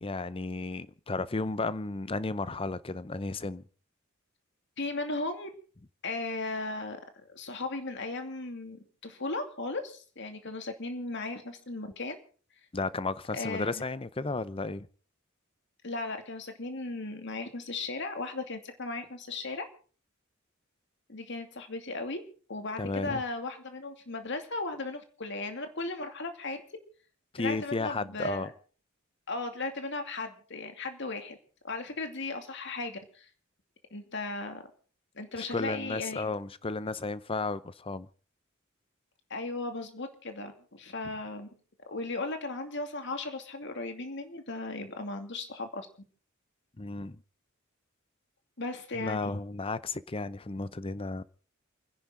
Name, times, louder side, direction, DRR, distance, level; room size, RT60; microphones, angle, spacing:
voice 1, 0.0-3.6 12.7-14.9 22.8-23.2 27.3-28.5 35.5-38.1 46.8-47.2 49.0-51.2, left 3 dB, 25° left, 0.7 m, -33 dB
voice 2, 4.8-5.5 6.0-7.0 7.3-12.1 13.3-13.8 15.8-19.6 21.1-26.6 27.4-28.5 29.3-31.4 31.6-33.3 33.9-34.6 35.1-36.3 39.3-41.5 41.9-45.9 48.6-49.4, left 3 dB, 60° left, 2.6 m, -36 dB
28.5 x 10.5 x 3.9 m
head